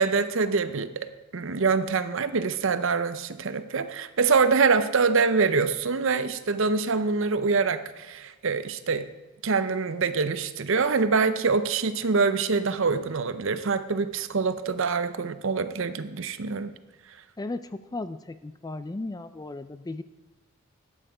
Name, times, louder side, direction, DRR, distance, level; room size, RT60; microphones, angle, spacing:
voice 1, 0.0-9.0 9.4-16.7, right 4 dB, 60° right, 11 dB, 0.6 m, -25 dB
voice 2, 17.4-20.0, left 2 dB, 15° left, 12 dB, 0.3 m, -35 dB
13.0 x 8.8 x 4.9 m, 1.1 s
head